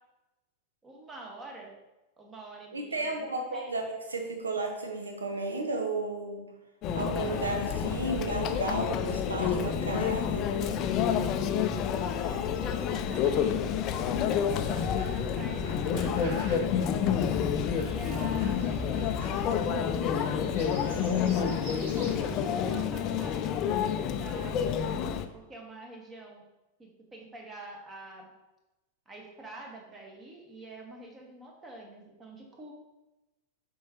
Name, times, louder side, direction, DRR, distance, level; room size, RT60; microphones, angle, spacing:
voice 1, 0.8-1.8 2.2-3.7 12.2-16.7 17.7-19.2 19.5-24.7 25.3-26.4 26.8-28.3 29.0-32.7, right 2 dB, 20° right, 0 dB, 1.4 m, -46 dB
voice 2, 2.7-3.8 4.1-6.4 6.9-10.5, right 2 dB, 75° right, 3 dB, 1.1 m, -33 dB
Conversation / Chatter / Crowd, 6.8-25.2, left 8 dB, 35° left, 0.4 m, -29 dB
sound 1, 14.5-22.1, right 2 dB, 55° right, 1.7 m, -46 dB
7.2 x 4.6 x 2.9 m, 1.0 s
figure-of-eight pair, 90°, 0 cm